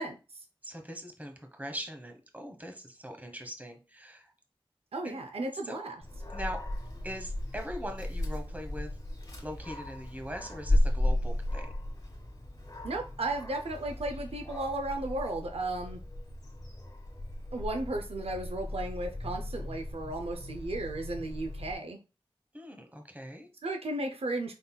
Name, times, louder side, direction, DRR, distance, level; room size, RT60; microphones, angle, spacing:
voice 1, 0.0-0.4 4.9-6.0 12.8-16.0 17.5-22.0 23.6-24.5, right 2 dB, 85° right, 4 dB, 0.5 m, -35 dB
voice 2, 0.6-4.3 5.0-5.2 5.6-5.8 6.3-6.6 7.0-8.9 9.4-11.7 22.5-23.5, equal, 15° right, 4 dB, 1.1 m, -41 dB
Dog, 6.0-21.7, left 1 dB, 40° left, 2.0 m, -35 dB
5.4 x 4.0 x 2.2 m, 0.31 s
wide cardioid pair, 40°, 10 cm